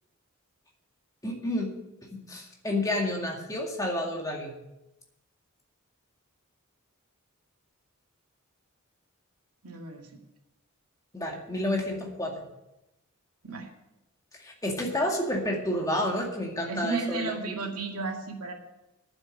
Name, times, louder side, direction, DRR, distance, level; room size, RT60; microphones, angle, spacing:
voice 1, 1.2-1.7 2.1-4.5 11.1-12.4 14.4-17.6, left 1 dB, 15° left, 0 dB, 2.1 m, -30 dB
voice 2, 9.6-10.1 13.4-13.7 16.7-18.5, right 3 dB, 90° right, 1 dB, 2.2 m, -33 dB
9.5 x 7.8 x 8.8 m, 0.91 s
head